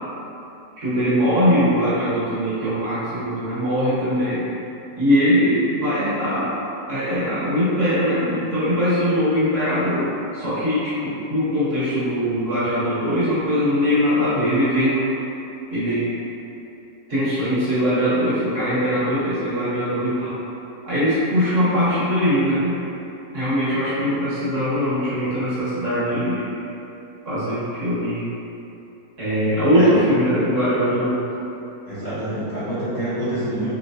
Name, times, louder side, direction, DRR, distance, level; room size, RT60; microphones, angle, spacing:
voice 1, 0.8-4.5 5.0-6.5 6.9-15.0 15.7-16.1 17.1-20.4 20.9-22.7 23.3-26.5 27.2-28.3 29.2-31.2, equal, 50° right, -12 dB, 1.3 m, -21 dB
voice 2, 31.9-33.7, right 1 dB, 50° left, -14 dB, 0.5 m, -26 dB
3.2 x 3.0 x 2.6 m, 2.8 s
omnidirectional pair, 1.9 m